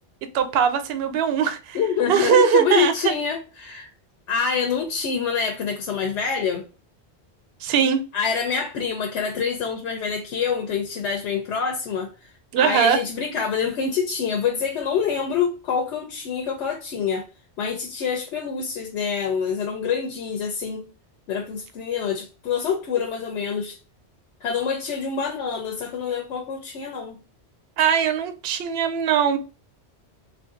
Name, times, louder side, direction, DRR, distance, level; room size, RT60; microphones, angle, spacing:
voice 1, 0.3-1.8 2.1-3.1 7.6-8.0 12.5-13.0 27.8-29.4, right 8 dB, 70° right, 0.8 m, -20 dB
voice 2, 1.7-3.9 4.3-6.7 8.1-17.3 17.6-20.9 21.3-23.8 24.4-27.2, left 6 dB, 85° left, 0.9 m, -26 dB
3.2 x 2.5 x 2.4 m
omnidirectional pair, 1.1 m